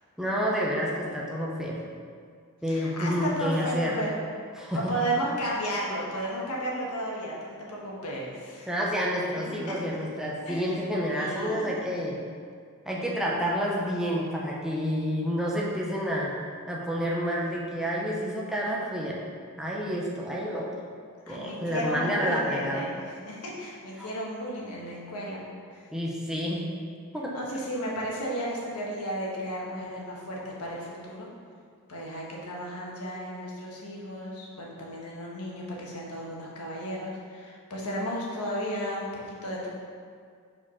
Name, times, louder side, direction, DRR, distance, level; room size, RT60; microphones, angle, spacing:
voice 1, 0.2-1.8 2.6-4.1 4.5-4.9 8.7-12.2 12.9-16.3 16.7-19.2 19.6-20.7 21.3-22.9 24.0-24.1 25.9-26.6 27.1-27.3, equal, 5° right, -4 dB, 0.7 m, -29 dB
voice 2, 2.7-4.1 4.7-8.7 9.7-9.8 10.5-10.8 11.1-11.8 21.3-25.4 25.7-25.9 27.3-31.3 31.9-39.7, equal, 80° left, -4 dB, 1.4 m, -34 dB
5.0 x 4.7 x 5.6 m, 2.1 s
head